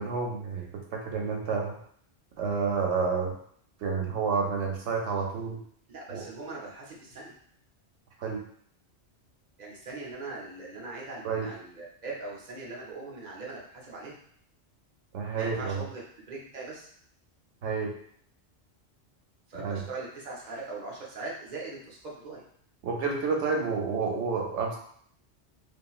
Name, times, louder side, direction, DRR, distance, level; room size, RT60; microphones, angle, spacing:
voice 1, 0.0-1.8 2.4-3.4 3.8-5.6 6.1-6.2 8.2-8.4 11.2-11.5 15.1-15.9 17.6-17.9 19.5-19.9 22.8-24.8, right 5 dB, 90° right, 0 dB, 1.0 m, -29 dB
voice 2, 5.9-7.3 9.6-14.2 15.3-16.0 16.3-16.9 19.5-22.4, right 3 dB, 45° right, -3 dB, 0.8 m, -40 dB
2.9 x 2.5 x 2.3 m, 0.63 s
omnidirectional pair, 1.2 m